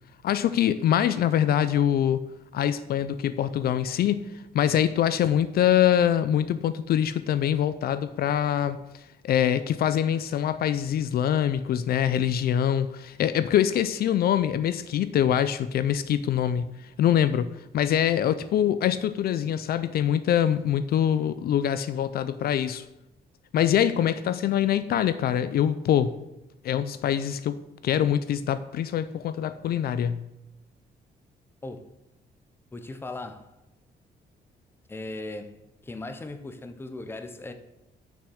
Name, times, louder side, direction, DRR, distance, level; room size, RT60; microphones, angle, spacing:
voice 1, 0.2-2.2 2.5-4.2 4.5-8.8 9.2-16.7 17.0-22.8 23.5-26.1 26.6-30.2, left 10 dB, 65° left, 0.5 m, -24 dB
voice 2, 32.7-33.5 34.9-35.6 35.8-37.5, left 2 dB, 15° left, 0.7 m, -38 dB
6.7 x 6.3 x 6.2 m
cardioid pair, 160°, 17 cm